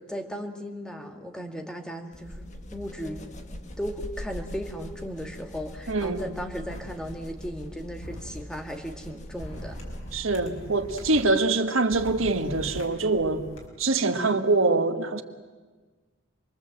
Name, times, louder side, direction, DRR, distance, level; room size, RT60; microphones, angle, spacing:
voice 1, 0.0-2.5 2.7-9.8, equal, 5° left, 2.1 m, -36 dB
sound 1, 2.1-10.4, left 1 dB, 35° left, 1.5 m, -41 dB
voice 2, 5.9-6.2 10.1-13.4 13.8-15.2, right 3 dB, 85° right, 1.6 m, -24 dB
sound 2, 6.7-6.8 8.0-8.2 9.4-11.2 11.9-13.6, equal, 85° left, 5.3 m, -41 dB
27.5 x 22.5 x 7.8 m
head